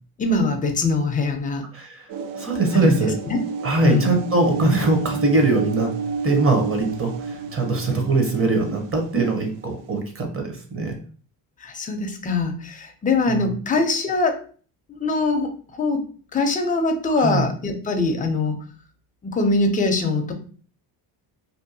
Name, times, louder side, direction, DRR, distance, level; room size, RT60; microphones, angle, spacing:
voice 1, 0.2-1.6 2.7-3.0 3.3-3.4 3.8-4.2 11.6-14.4 14.9-18.6 19.2-20.3, left 3 dB, 20° left, 5 dB, 0.4 m, -23 dB
voice 2, 1.7-2.1 2.4-3.2 3.6-5.9 6.2-11.0 13.3-13.5 17.1-17.4, right 2 dB, 30° right, 3 dB, 0.8 m, -22 dB
sound 1, 2.1-10.0, right 5 dB, 85° right, 0.6 m, -31 dB
2.6 x 2.2 x 2.6 m, 0.42 s
cardioid pair, 105°, 46 cm